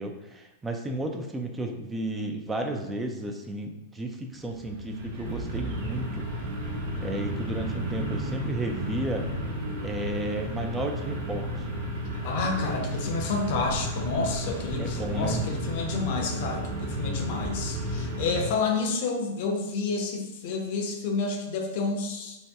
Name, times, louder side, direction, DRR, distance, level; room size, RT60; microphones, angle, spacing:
voice 1, 0.0-6.3 7.0-9.3 9.8-11.7 14.8-15.4, right 1 dB, 15° right, 3 dB, 0.3 m, -33 dB
sound 1, 4.3-18.5, right 1 dB, 65° right, 0.7 m, -33 dB
voice 2, 12.2-22.4, left 4 dB, 60° left, 3 dB, 0.6 m, -29 dB
2.7 x 2.2 x 3.3 m, 0.97 s
hypercardioid pair, 110°, 0 cm